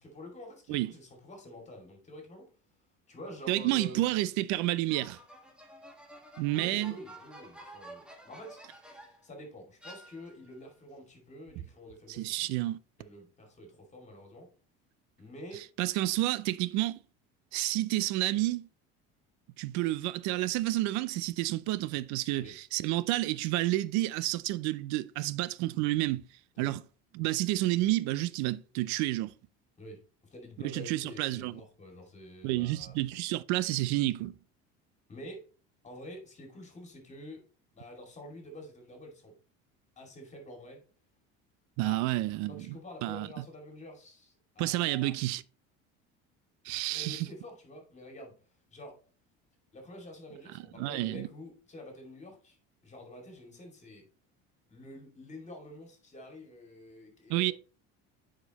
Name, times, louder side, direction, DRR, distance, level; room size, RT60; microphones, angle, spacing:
voice 1, 0.0-2.5 3.1-4.1 6.5-12.5 13.0-14.5 15.2-15.7 22.4-22.6 26.5-26.7 29.8-33.0 35.1-35.5 35.8-37.4 37.7-39.3 40.0-40.8 41.8-42.0 42.5-45.1 46.9-48.4 48.7-49.0 49.7-52.6 52.8-54.1 54.7-57.5, left 1 dB, 25° left, 2.4 m, -48 dB
voice 2, 3.5-5.2 6.4-6.9 12.1-12.8 15.8-17.0 17.5-18.7 19.6-26.2 26.6-26.8 27.1-29.3 30.6-31.6 32.4-34.3 41.8-43.3 44.6-45.4 46.6-47.3 50.8-51.3 57.3-57.5, right 17 dB, 75° right, 0.5 m, -30 dB
sound 1, 4.9-9.3 9.8-10.6, right 1 dB, 5° right, 1.4 m, -51 dB
8.1 x 5.2 x 3.0 m
cardioid pair, 125°, 29 cm